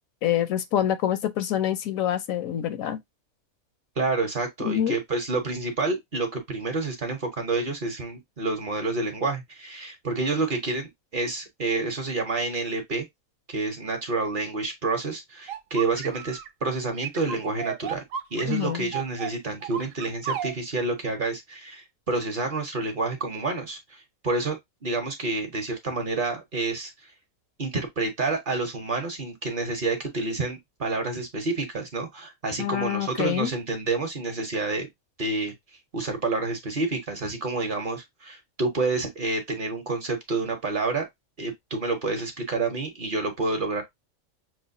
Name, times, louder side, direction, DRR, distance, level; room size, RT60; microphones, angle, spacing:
voice 1, 0.2-3.0 4.6-5.0 18.5-18.9 32.6-33.5, left 10 dB, 75° left, 1.0 m, -26 dB
voice 2, 4.0-13.1 13.5-18.0 18.3-24.6 24.8-26.9 27.6-34.9 35.2-35.5 35.9-41.0 41.4-43.8, right 3 dB, 45° right, 0.8 m, -29 dB
sound 1, 15.5-16.5 17.0-20.5, right 8 dB, 70° right, 0.9 m, -33 dB
6.1 x 2.2 x 2.6 m
omnidirectional pair, 1.5 m